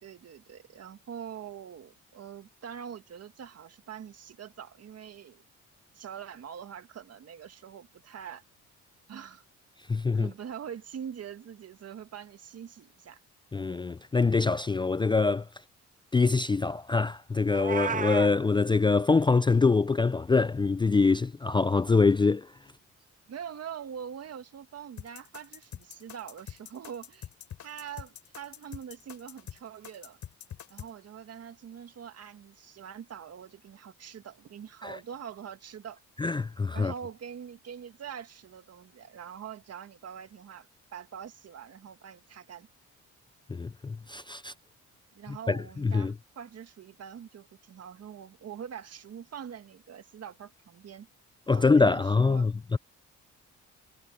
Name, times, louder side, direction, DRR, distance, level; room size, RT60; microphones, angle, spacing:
voice 1, 0.0-5.4 5.9-8.4 9.1-9.4 10.1-13.2 23.3-27.3 27.6-30.2 30.7-36.0 36.7-42.7 45.1-51.1 51.5-52.5, right 8 dB, 55° right, 1.8 m, -44 dB
voice 2, 9.9-10.3 13.5-15.5 16.1-22.5 34.8-35.0 36.2-36.9 43.5-44.5 45.3-46.1 51.5-52.8, left 4 dB, 15° left, 0.4 m, -24 dB
Meow, 17.5-18.3, right 6 dB, 25° right, 0.7 m, -32 dB
sound 1, 25.0-30.9, left 9 dB, 65° left, 4.4 m, -44 dB
cardioid pair, 90°, 30 cm